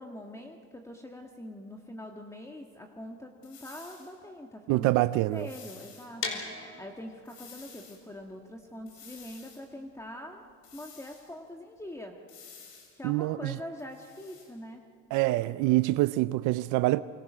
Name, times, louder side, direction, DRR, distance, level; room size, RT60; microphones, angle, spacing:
voice 1, 0.0-5.0 5.3-10.5 10.7-12.1 13.0-14.8, left 1 dB, 10° left, 1.6 m, -44 dB
sound 1, 3.4-4.1 5.3-6.1 7.3-8.0 8.9-9.6 10.6-11.3 12.3-13.0 13.8-14.5, left 6 dB, 85° left, 5.4 m, -51 dB
voice 2, 4.7-5.5 13.0-13.6 15.1-17.0, right 18 dB, 85° right, 0.5 m, -25 dB
sound 2, 6.2-12.0, left 4 dB, 45° left, 4.8 m, -41 dB
28.0 x 25.5 x 6.2 m
cardioid pair, 100°, 30 cm